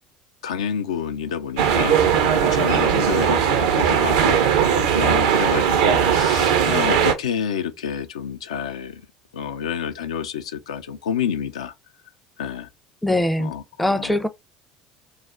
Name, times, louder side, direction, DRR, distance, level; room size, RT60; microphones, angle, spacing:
voice 1, 0.4-9.0 9.3-11.7 12.4-12.7 13.4-14.2, left 8 dB, 85° left, 0.3 m, -29 dB
sound 1, 1.6-7.1, right 8 dB, 75° right, 0.5 m, -19 dB
voice 2, 13.0-13.5 13.8-14.3, left 1 dB, ahead, 0.4 m, -21 dB
2.3 x 2.1 x 3.6 m
hypercardioid pair, 70°, 3 cm